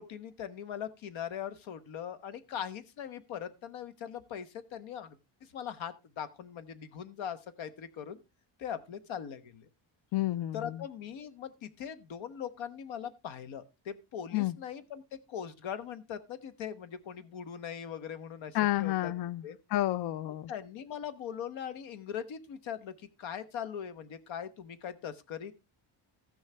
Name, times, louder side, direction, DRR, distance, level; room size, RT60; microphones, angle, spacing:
voice 1, 0.0-8.2 8.6-9.7 10.5-19.1 19.4-19.6 20.5-25.5, left 8 dB, 75° left, 1.1 m, -41 dB
voice 2, 10.1-10.8 14.3-14.5 18.5-19.4 19.7-20.5, left 16 dB, 55° left, 0.5 m, -30 dB
15.0 x 6.4 x 3.3 m
cardioid pair, 150°, 48 cm